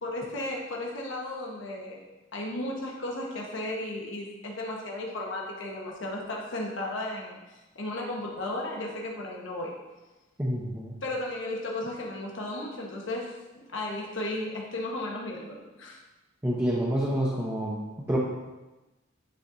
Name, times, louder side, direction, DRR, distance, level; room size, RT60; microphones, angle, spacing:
voice 1, 0.0-2.0 2.3-9.8 11.0-16.0, left 1 dB, 70° left, -2 dB, 1.1 m, -35 dB
voice 2, 10.4-10.9 16.4-17.8 18.1-18.2, right 1 dB, 15° right, -6 dB, 0.7 m, -27 dB
9.9 x 4.2 x 2.7 m, 1.1 s
head